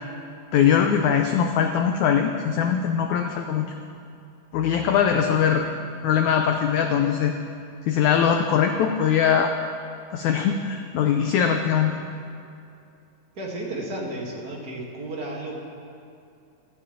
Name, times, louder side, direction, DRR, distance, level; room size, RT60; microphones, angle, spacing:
voice 1, 0.5-3.7 4.5-5.6 6.0-7.3 7.8-9.5 10.1-12.0, left 8 dB, 85° left, 5 dB, 1.6 m, -21 dB
voice 2, 13.3-15.6, right 1 dB, 35° right, -3 dB, 1.8 m, -33 dB
14.0 x 7.3 x 8.6 m, 2.6 s
omnidirectional pair, 4.1 m